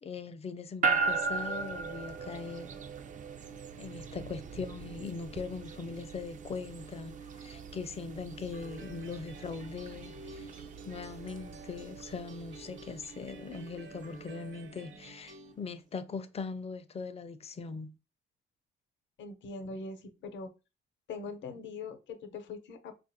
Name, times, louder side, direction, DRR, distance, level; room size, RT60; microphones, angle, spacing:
voice 1, 0.0-2.8 3.8-10.5 10.8-17.9, left 4 dB, 30° left, 0.4 m, -40 dB
sound 1, 0.8-15.1, right 4 dB, 40° right, 0.4 m, -38 dB
sound 2, 8.5-15.5, right 2 dB, 65° right, 1.0 m, -51 dB
voice 2, 19.2-20.5 21.1-22.9, left 4 dB, 70° left, 0.7 m, -42 dB
3.9 x 2.4 x 2.6 m
cardioid pair, 90°, 20 cm